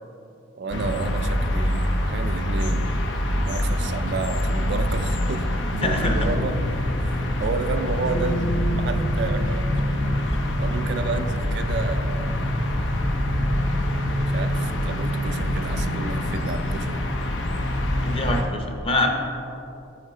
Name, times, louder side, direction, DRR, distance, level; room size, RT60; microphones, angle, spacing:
voice 1, 0.6-3.0 3.5-6.6 7.0-9.7 10.6-12.6 14.3-17.0 18.1-18.4, right 4 dB, 60° right, 9 dB, 0.3 m, -31 dB
sound 1, 0.7-18.4, left 1 dB, 85° left, 0.7 m, -25 dB
voice 2, 5.8-6.2 18.0-19.1, left 2 dB, 30° left, 3 dB, 0.7 m, -24 dB
Keyboard (musical), 8.1-10.9, right 4 dB, 65° left, 1.0 m, -38 dB
7.1 x 5.8 x 4.2 m, 2.7 s
head